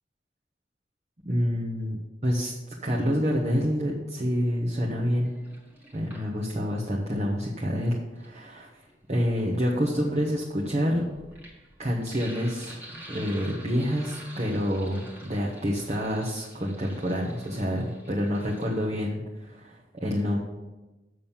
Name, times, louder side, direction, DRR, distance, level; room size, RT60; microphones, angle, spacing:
voice 1, 1.2-2.0 2.2-2.5 2.8-5.3 5.9-8.7 9.1-11.0 11.8-12.8 13.1-20.4, equal, 40° right, -4 dB, 1.2 m, -27 dB
Sink (filling or washing), 5.2-6.8 7.9-18.8, right 1 dB, 10° right, 1.7 m, -49 dB
7.3 x 6.4 x 7.2 m, 1.1 s
head